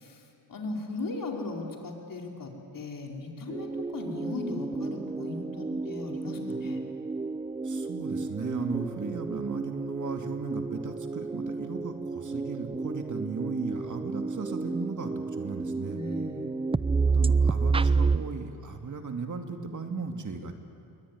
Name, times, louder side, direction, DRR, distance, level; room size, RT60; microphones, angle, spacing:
voice 1, 0.0-6.8 15.9-16.5, left 2 dB, 45° left, 1 dB, 4.9 m, -37 dB
sound 1, 3.5-18.2, right 4 dB, 15° right, 0.5 m, -30 dB
voice 2, 7.6-16.0 17.1-20.5, right 4 dB, 40° right, 5 dB, 2.7 m, -36 dB
22.5 x 19.0 x 9.7 m, 2.6 s
supercardioid pair, 65°, 45 cm